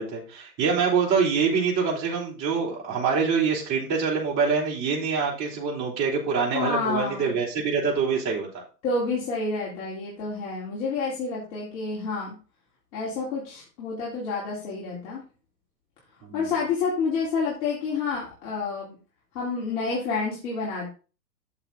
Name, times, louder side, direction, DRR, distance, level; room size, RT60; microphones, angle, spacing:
voice 1, 0.0-8.6 16.2-16.5, right 5 dB, 35° right, -3 dB, 3.9 m, -25 dB
voice 2, 6.5-7.4 8.8-12.4 12.9-15.2 16.3-19.0 19.3-20.9, left 4 dB, 55° left, -6 dB, 3.9 m, -29 dB
8.0 x 7.0 x 3.9 m, 0.35 s
hypercardioid pair, 120°, 50 cm